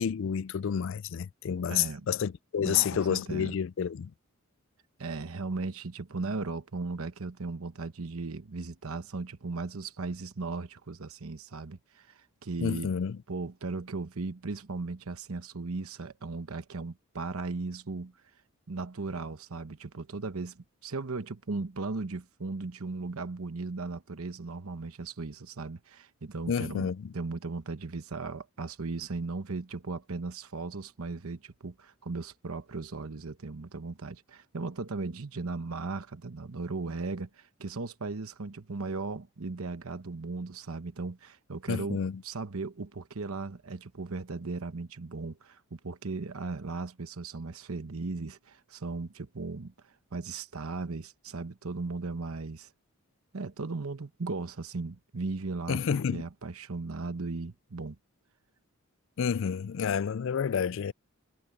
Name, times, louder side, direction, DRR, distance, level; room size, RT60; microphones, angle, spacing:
voice 1, 0.0-4.1 12.6-13.2 26.5-27.1 41.7-42.2 55.7-56.2 59.2-60.9, left 7 dB, 60° left, 0.4 m, -29 dB
voice 2, 1.7-2.1 2.6-3.5 5.0-12.9 13.3-18.1 18.7-26.9 27.1-52.7 53.3-58.0, right 3 dB, 85° right, 1.0 m, -37 dB
head